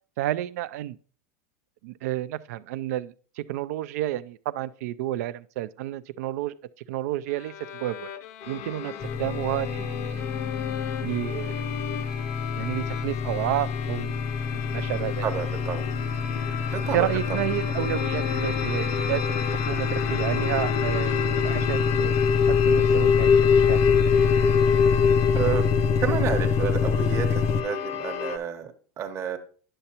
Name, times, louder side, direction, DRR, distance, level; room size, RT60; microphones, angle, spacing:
voice 1, 0.2-1.0 1.8-6.5 6.9-8.1 8.5-10.3 11.0-11.7 12.5-14.2 14.5-15.2 16.9-19.4 19.7-23.8, right 14 dB, 75° right, 0.4 m, -31 dB
Bowed string instrument, 7.3-21.9, left 10 dB, 85° left, 0.5 m, -39 dB
sound 1, 8.4-28.4, left 6 dB, 55° left, 0.8 m, -27 dB
sound 2, 9.0-27.6, left 6 dB, 30° left, 0.4 m, -27 dB
voice 2, 15.2-15.8 16.7-17.1 25.3-25.6 26.0-29.4, right 8 dB, 35° right, 0.9 m, -30 dB
9.8 x 6.7 x 2.9 m
supercardioid pair, 135°, 9 cm